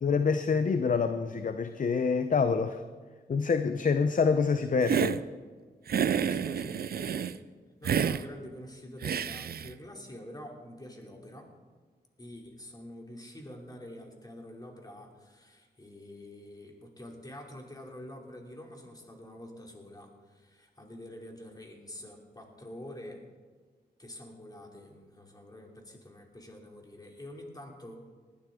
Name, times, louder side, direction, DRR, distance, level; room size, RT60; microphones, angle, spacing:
voice 1, 0.0-2.8 3.3-5.2, left 5 dB, 50° left, 9 dB, 0.7 m, -26 dB
Hiss, 4.8-5.2 5.9-7.4 7.8-8.2 9.0-9.7, right 8 dB, 65° right, 0.5 m, -29 dB
voice 2, 6.2-7.5 7.8-11.5 12.2-23.2 24.0-28.0, left 1 dB, 20° left, 1 dB, 2.9 m, -47 dB
19.5 x 12.0 x 3.8 m, 1.5 s
cardioid pair, 70°, 17 cm